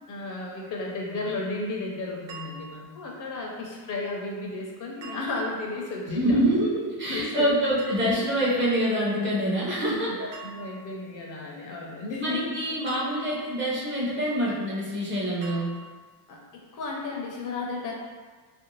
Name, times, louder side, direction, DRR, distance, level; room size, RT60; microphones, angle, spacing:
voice 1, 0.1-6.4 7.1-7.5 9.9-12.4 16.3-16.4 16.7-17.9, left 3 dB, 45° left, -2 dB, 0.5 m, -33 dB
sound 1, 2.3-3.0 5.0-5.7 7.8-8.5 10.3-11.0 12.9-13.7 15.4-16.1, right 4 dB, 80° right, 0.8 m, -44 dB
voice 2, 6.1-10.1 12.2-15.7, equal, 25° right, -6 dB, 0.6 m, -25 dB
3.2 x 2.5 x 3.0 m, 1.4 s
cardioid pair, 175°, 45 cm